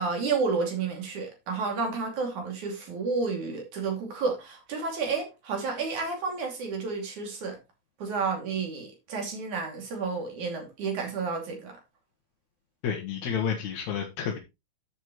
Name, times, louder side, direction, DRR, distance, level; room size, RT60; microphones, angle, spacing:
voice 1, 0.0-7.6 8.0-11.8, right 4 dB, 85° right, 4.3 m, -31 dB
voice 2, 12.8-14.4, left 7 dB, 75° left, 2.7 m, -30 dB
11.0 x 7.3 x 3.1 m
omnidirectional pair, 3.3 m